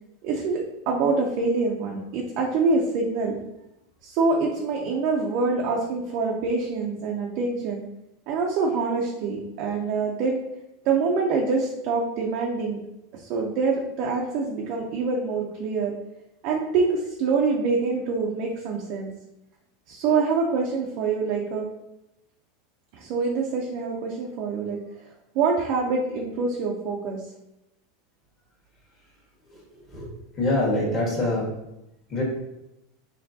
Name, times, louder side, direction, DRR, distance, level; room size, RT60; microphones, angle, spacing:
voice 1, 0.2-3.4 4.0-7.8 8.3-10.4 10.8-12.8 13.1-15.9 16.4-19.1 19.9-21.7 22.9-25.1 25.3-27.2, right 4 dB, 45° right, -1 dB, 0.5 m, -25 dB
voice 2, 30.4-31.5 32.1-32.2, left 2 dB, 25° left, -4 dB, 1.4 m, -24 dB
4.3 x 3.2 x 2.7 m, 0.88 s
supercardioid pair, 160°, 0 cm